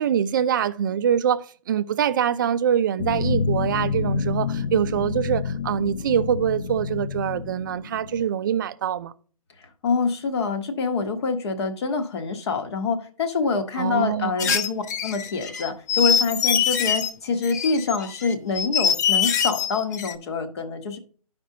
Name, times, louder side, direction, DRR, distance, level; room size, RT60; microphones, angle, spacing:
voice 1, 0.0-9.1 13.8-14.6, right 9 dB, 35° right, 0.4 m, -24 dB
sound 1, 3.0-8.3, left 5 dB, 80° left, 0.9 m, -28 dB
voice 2, 9.6-21.0, left 4 dB, 45° left, 1.1 m, -26 dB
sound 2, 14.4-17.1 17.4-20.1, left 7 dB, 30° left, 0.6 m, -24 dB
12.5 x 5.2 x 2.7 m
hypercardioid pair, 155°, 19 cm